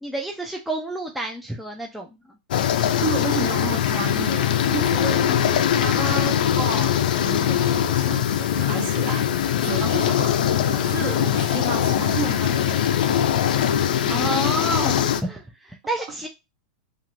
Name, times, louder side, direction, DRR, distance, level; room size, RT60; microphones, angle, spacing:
voice 1, 0.0-2.2 5.0-5.6 14.1-16.3, right 1 dB, ahead, 0.3 m, -30 dB
sound 1, 2.5-15.2, left 10 dB, 75° left, 0.4 m, -21 dB
voice 2, 3.0-9.3 9.6-13.3 14.0-14.3, right 5 dB, 40° right, 0.8 m, -32 dB
2.6 x 2.4 x 3.0 m
supercardioid pair, 140°, 5 cm